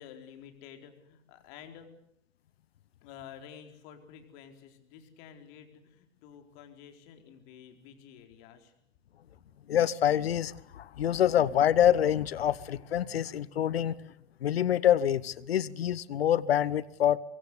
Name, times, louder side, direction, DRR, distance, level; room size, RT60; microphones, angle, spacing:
voice 1, 0.0-1.9 3.0-8.7, left 8 dB, 50° left, 6 dB, 4.4 m, -50 dB
voice 2, 9.7-13.9 14.4-17.2, left 10 dB, 70° left, 21 dB, 1.0 m, -26 dB
24.5 x 23.0 x 8.3 m, 0.72 s
figure-of-eight pair, 90°, 32 cm